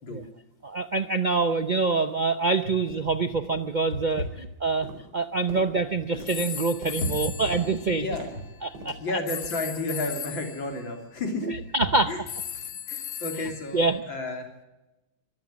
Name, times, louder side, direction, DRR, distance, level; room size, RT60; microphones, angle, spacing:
voice 1, 0.6-8.1 8.6-9.0 11.5-12.1 13.7-14.0, right 3 dB, 85° right, 9 dB, 0.4 m, -26 dB
sound 1, 1.4-1.5 2.1-2.2 2.7-2.9 3.4-3.7 4.1-4.6 4.8-9.8 10.1-10.4 10.7-10.9 11.4-11.5, right 1 dB, 60° right, 5.1 m, -43 dB
voice 2, 3.9-4.3 7.0-7.4 7.9-8.3 9.0-11.5 11.8-12.2 12.6-14.5, left 2 dB, 85° left, 4 dB, 4.1 m, -32 dB
sound 2, 6.3-8.5 9.3-10.7 12.3-14.0, left 9 dB, 55° left, 1.4 m, -37 dB
24.5 x 14.5 x 7.5 m, 1.0 s
omnidirectional pair, 2.0 m